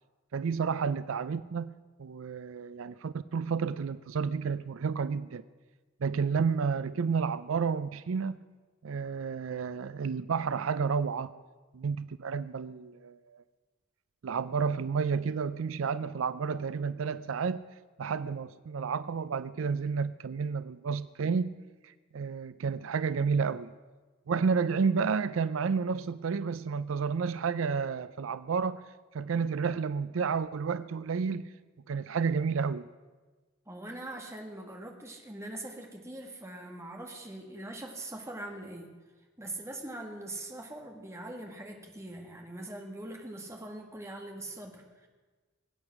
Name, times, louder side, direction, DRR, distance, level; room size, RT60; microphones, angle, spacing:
voice 1, 0.3-5.4 6.0-8.4 8.8-11.3 11.7-13.4 14.2-17.7 18.0-21.6 21.8-23.7 24.3-28.8 29.1-31.5 31.9-32.9, right 5 dB, 75° right, 15 dB, 0.4 m, -31 dB
voice 2, 33.7-38.9 39.4-45.1, right 1 dB, 15° right, 2 dB, 1.8 m, -42 dB
22.0 x 8.9 x 6.0 m, 1.3 s
head